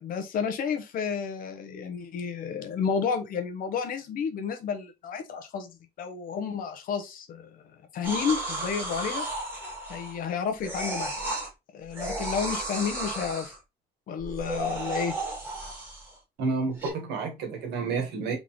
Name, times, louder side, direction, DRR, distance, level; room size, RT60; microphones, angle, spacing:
voice 1, 0.0-9.3 9.9-11.1 11.7-13.5 14.1-15.1, left 6 dB, 55° left, 0.9 m, -31 dB
sound 1, 8.0-10.3 10.6-11.5 11.9-13.6 14.2-16.1 16.8-16.9, right 2 dB, 10° right, 2.1 m, -33 dB
voice 2, 16.4-18.4, right 4 dB, 85° right, 1.6 m, -30 dB
3.9 x 3.7 x 3.0 m
cardioid pair, 170°, 17 cm